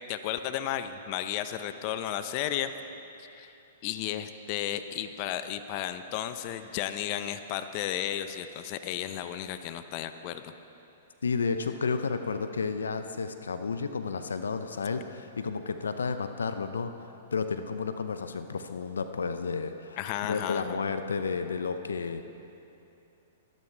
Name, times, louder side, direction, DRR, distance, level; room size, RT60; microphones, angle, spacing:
voice 1, 0.1-2.8 3.2-3.5 3.8-10.5 20.0-20.8, left 11 dB, 45° left, 10 dB, 0.7 m, -33 dB
voice 2, 11.2-16.9 17.3-20.0 20.3-22.3, left 5 dB, 85° left, 9 dB, 0.6 m, -31 dB
21.5 x 12.0 x 3.4 m, 2.8 s
hypercardioid pair, 115°, 0 cm